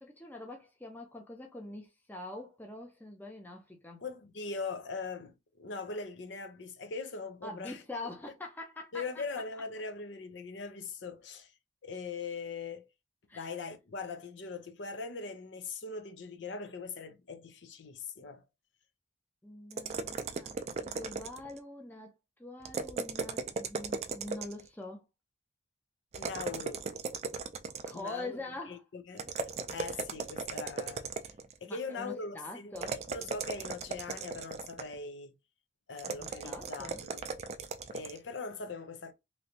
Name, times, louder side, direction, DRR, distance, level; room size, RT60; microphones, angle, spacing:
voice 1, 0.0-4.0 7.4-9.2 13.3-13.5 19.4-20.5 20.8-22.1 22.4-25.0 27.9-28.8 31.7-33.0 35.9-37.0, left 2 dB, 10° left, 0.6 m, -44 dB
voice 2, 4.0-7.8 8.9-11.5 11.8-12.9 13.3-18.4 26.2-26.8 27.9-28.4 28.7-29.3 29.7-31.1 31.6-35.3 35.9-37.3 37.9-39.1, left 4 dB, 80° left, 0.6 m, -41 dB
sound 1, 19.7-21.6 22.6-24.7 26.1-28.1 29.2-31.5 32.7-35.0 36.0-38.2, right 4 dB, 35° right, 0.3 m, -37 dB
3.1 x 2.7 x 2.7 m
head